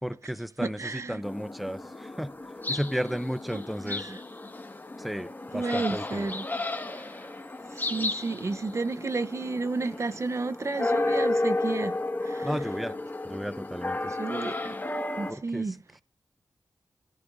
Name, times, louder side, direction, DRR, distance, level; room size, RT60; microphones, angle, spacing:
voice 1, 0.0-2.3 2.7-4.1 5.0-6.3 12.4-12.9 13.2-14.1 15.3-15.8, equal, ahead, 0.6 m, -34 dB
voice 2, 0.6-1.2 3.5-4.2 5.5-6.4 7.0-7.3 7.7-12.5 14.2-14.7 15.2-15.8, right 3 dB, 45° right, 0.8 m, -32 dB
sound 1, 1.2-15.3, left 2 dB, 30° left, 1.7 m, -33 dB
26.5 x 14.5 x 2.6 m
wide cardioid pair, 75°, 7 cm